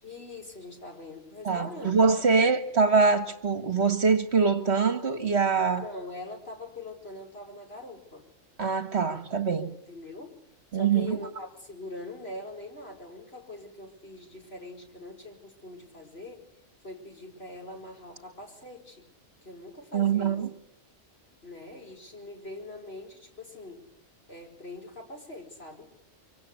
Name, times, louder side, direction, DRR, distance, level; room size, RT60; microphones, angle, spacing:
voice 1, 0.0-2.0 5.8-8.3 9.9-16.5 16.8-19.1 19.4-20.4 21.4-23.9 24.3-25.9, left 2 dB, 50° left, 5.3 m, -43 dB
voice 2, 1.5-5.8 8.6-9.7 10.7-11.2 19.9-20.5, right 5 dB, 55° right, 1.9 m, -24 dB
25.0 x 25.0 x 8.4 m
omnidirectional pair, 1.3 m